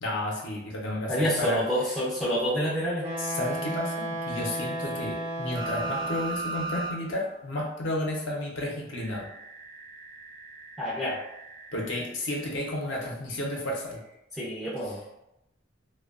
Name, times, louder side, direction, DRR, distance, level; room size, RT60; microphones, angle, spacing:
voice 1, 0.0-1.6 3.2-9.3 11.7-14.0, left 1 dB, 65° left, -2 dB, 0.5 m, -32 dB
voice 2, 1.1-3.1 10.8-11.2 14.4-15.1, equal, ahead, -8 dB, 0.4 m, -28 dB
Wind instrument woodwind instrument, 3.0-6.5, right 1 dB, 35° right, 0.7 m, -34 dB
sound 1, 5.5-6.9 7.3-7.4 8.9-12.0 13.7-13.8, right 3 dB, 85° right, 0.9 m, -37 dB
2.5 x 2.1 x 2.4 m, 0.85 s
head